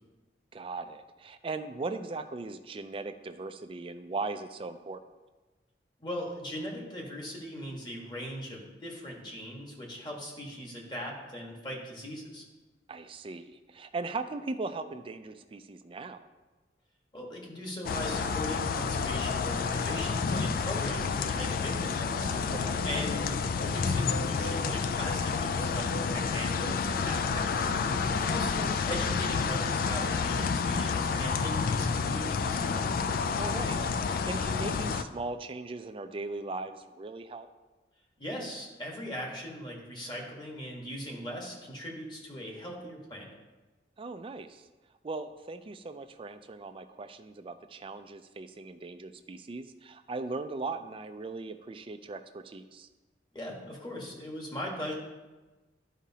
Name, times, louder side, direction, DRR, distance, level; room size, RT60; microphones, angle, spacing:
voice 1, 0.5-5.0 12.9-16.2 22.5-22.9 27.9-28.3 33.4-37.5 44.0-44.7 45.0-52.9, right 3 dB, 30° right, 9 dB, 0.4 m, -39 dB
voice 2, 6.0-12.4 17.1-22.4 22.8-27.7 28.3-32.9 38.2-43.3 53.3-54.9, equal, 25° left, -1 dB, 1.4 m, -39 dB
sound 1, 17.8-35.0, left 5 dB, 50° left, 0.3 m, -29 dB
11.5 x 5.0 x 2.8 m, 1.2 s
head